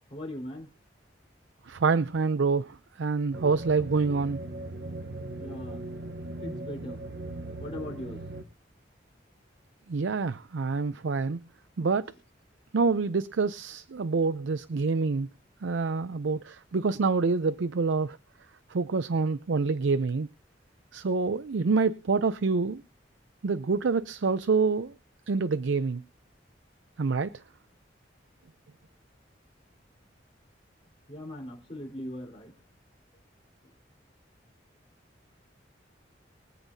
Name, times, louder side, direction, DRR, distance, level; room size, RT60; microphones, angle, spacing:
voice 1, 0.1-0.7 5.4-5.8 6.4-7.0 7.6-8.2 31.1-32.5, left 1 dB, 30° left, 4.2 m, -39 dB
voice 2, 1.7-4.4 9.9-11.4 11.8-12.1 12.7-15.3 15.6-18.2 18.7-20.3 20.9-22.8 23.4-24.9 25.3-26.0 27.0-27.3, right 4 dB, 85° right, 0.5 m, -26 dB
sound 1, 3.3-8.4, right 2 dB, 65° right, 1.0 m, -39 dB
23.5 x 8.1 x 2.7 m
head